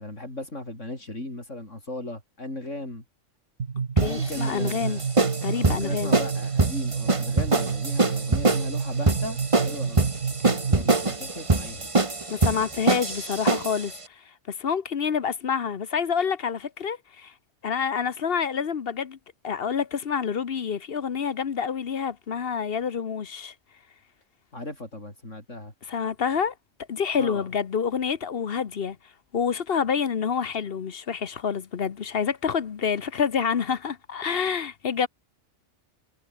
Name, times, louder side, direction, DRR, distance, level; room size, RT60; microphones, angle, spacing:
voice 1, 0.0-3.0 4.0-5.0 5.6-9.4 9.6-10.1 10.7-11.9 24.5-25.7 27.2-27.5, left 1 dB, 85° left, 7.7 m, -37 dB
sound 1, 3.6-11.2, right 6 dB, 85° right, 2.0 m, -30 dB
voice 2, 4.0-5.0 5.4-6.1 10.8-10.9 12.3-17.3 17.6-19.2 19.4-23.5 25.9-26.5 26.9-29.0 29.3-35.1, left 6 dB, 55° left, 1.1 m, -28 dB
sound 2, 4.0-13.9, right 3 dB, 25° right, 1.5 m, -24 dB
omnidirectional pair, 1.2 m